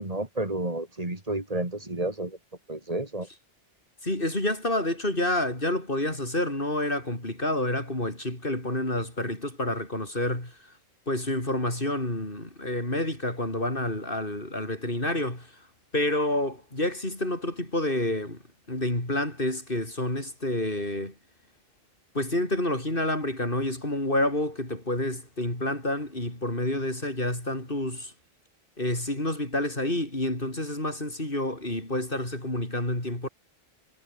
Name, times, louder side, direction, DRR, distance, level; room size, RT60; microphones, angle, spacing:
voice 1, 0.0-2.4 2.7-3.3, right 2 dB, 35° right, 3.5 m, -31 dB
voice 2, 4.0-10.6 11.1-15.5 15.9-18.4 18.7-21.1 22.1-28.1 28.8-33.3, left 1 dB, 60° left, 6.6 m, -28 dB
omnidirectional pair, 1.1 m